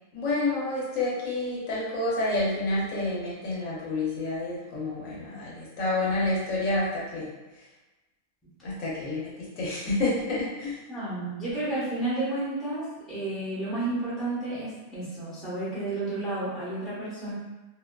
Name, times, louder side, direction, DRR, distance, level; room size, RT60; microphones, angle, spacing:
voice 1, 0.1-7.3 8.6-10.8, left 2 dB, 75° left, -7 dB, 1.1 m, -29 dB
voice 2, 10.9-17.3, right 2 dB, ahead, -11 dB, 0.7 m, -31 dB
2.7 x 2.2 x 2.2 m, 1.1 s
omnidirectional pair, 1.4 m